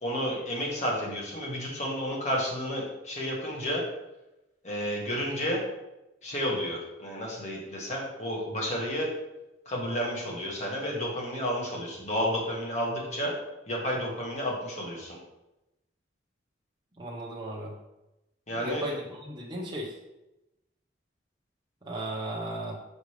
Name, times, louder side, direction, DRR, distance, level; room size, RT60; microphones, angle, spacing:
voice 1, 0.0-3.8 4.6-5.6 6.2-9.1 9.6-13.3 13.7-15.2 18.5-18.9, equal, 40° left, -3 dB, 1.6 m, -31 dB
voice 2, 17.0-17.7 18.6-19.9 21.8-22.8, right 1 dB, 25° right, -5 dB, 1.0 m, -35 dB
6.2 x 5.3 x 3.2 m, 0.94 s
head